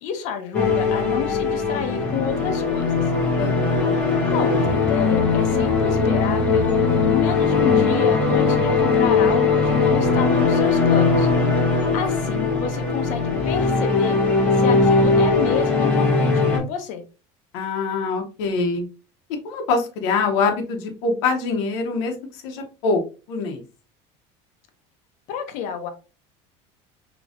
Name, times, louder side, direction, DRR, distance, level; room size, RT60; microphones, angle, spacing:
voice 1, 0.0-2.8 4.2-6.8 7.1-11.3 11.6-14.2 14.6-17.0 25.3-25.9, left 7 dB, 55° left, 6 dB, 0.9 m, -30 dB
sound 1, 0.5-16.6, left 4 dB, 10° left, 1.3 m, -19 dB
voice 2, 3.4-4.0 17.5-18.8 19.4-23.0 23.3-23.6, left 4 dB, 85° left, 2 dB, 1.0 m, -24 dB
5.0 x 3.0 x 2.5 m, 0.33 s
cardioid pair, 165°, 15 cm